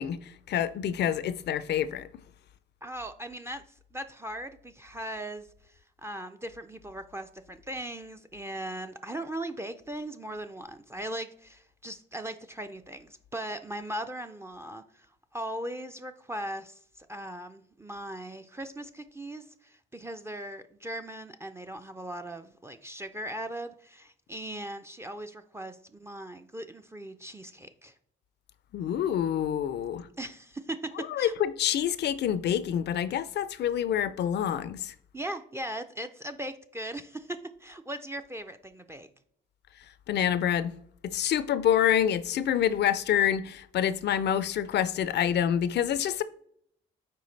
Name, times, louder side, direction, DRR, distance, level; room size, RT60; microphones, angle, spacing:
voice 1, 0.0-2.2 28.7-30.1 31.0-34.9 40.1-40.7 41.0-46.2, left 10 dB, 60° left, 0.4 m, -27 dB
voice 2, 2.8-3.6 3.9-15.1 15.3-27.9 30.2-31.3 35.1-39.1, right 1 dB, 15° right, 0.4 m, -39 dB
6.7 x 4.4 x 3.2 m
cardioid pair, 90°, 20 cm